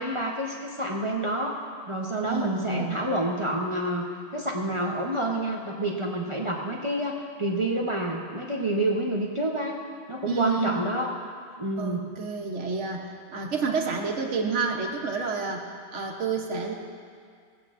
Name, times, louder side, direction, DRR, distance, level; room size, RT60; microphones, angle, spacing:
voice 1, 0.0-1.6 1.9-4.0 4.3-9.8 10.1-11.1 11.6-12.0, right 1 dB, 30° right, -1 dB, 0.7 m, -28 dB
voice 2, 2.2-3.0 10.2-10.9 11.8-15.7 15.9-16.7, right 4 dB, 90° right, 0 dB, 1.2 m, -29 dB
18.5 x 8.2 x 2.5 m, 2.1 s
omnidirectional pair, 1.2 m